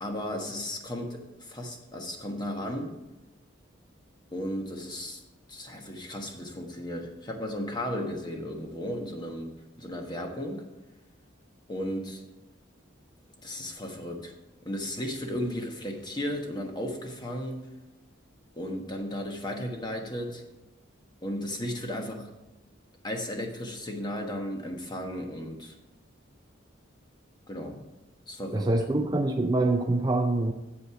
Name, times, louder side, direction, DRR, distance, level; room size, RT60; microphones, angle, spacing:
voice 1, 0.0-3.0 4.3-5.2 5.5-10.7 11.7-12.2 13.4-14.3 14.6-17.7 18.5-20.4 21.2-22.3 23.0-25.7 27.5-27.9 28.3-28.8, left 1 dB, 20° left, 3 dB, 1.2 m, -35 dB
voice 2, 28.5-30.5, right 2 dB, 20° right, 5 dB, 0.4 m, -25 dB
8.4 x 7.5 x 4.8 m, 0.98 s
head